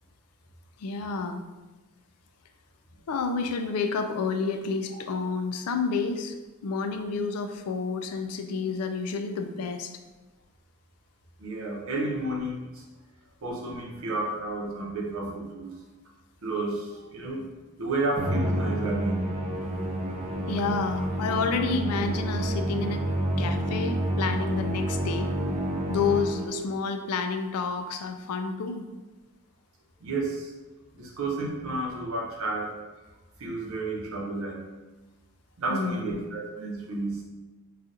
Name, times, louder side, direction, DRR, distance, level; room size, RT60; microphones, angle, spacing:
voice 1, 0.8-1.4 3.1-6.3 6.6-9.9 20.5-23.1 23.4-25.3 25.9-28.9 35.7-36.2, left 4 dB, 75° left, 7 dB, 0.3 m, -29 dB
voice 2, 11.4-12.8 13.4-15.7 16.4-17.4 17.8-19.3 26.5-26.6 30.0-30.5 30.9-32.7 33.4-34.6 35.6-37.2, right 2 dB, 65° right, -2 dB, 0.7 m, -31 dB
Musical instrument, 18.2-26.7, right 1 dB, 30° right, 0.5 m, -29 dB
4.1 x 2.4 x 2.5 m, 1.2 s
head